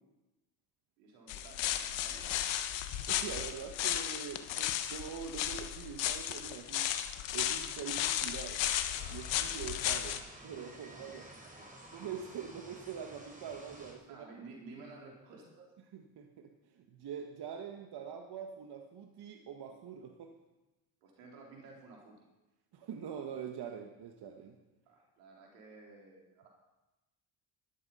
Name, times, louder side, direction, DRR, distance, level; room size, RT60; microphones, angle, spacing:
voice 1, 1.0-2.4 10.9-12.1 14.1-15.7 21.0-22.3 24.9-26.5, right 3 dB, 85° right, -1 dB, 4.2 m, -54 dB
sound 1, 1.3-10.2, left 12 dB, 70° left, 1.3 m, -35 dB
voice 2, 3.1-6.9 7.3-8.6 9.1-11.2 11.9-14.3 15.9-20.3 22.7-24.6, right 7 dB, 55° right, 4 dB, 1.7 m, -44 dB
sound 2, 8.9-13.9, right 1 dB, 15° right, 5.2 m, -52 dB
14.0 x 12.0 x 5.6 m, 1.0 s
hypercardioid pair, 60°, 46 cm